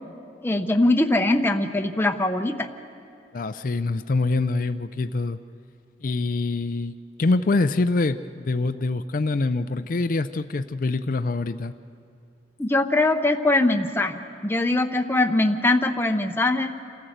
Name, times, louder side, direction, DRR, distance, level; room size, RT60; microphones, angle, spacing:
voice 1, 0.4-2.7 12.6-16.7, left 2 dB, 10° left, 5 dB, 0.7 m, -22 dB
voice 2, 3.3-5.4 6.0-11.7, left 3 dB, 50° left, 9 dB, 0.4 m, -25 dB
28.0 x 14.0 x 7.9 m, 2.5 s
head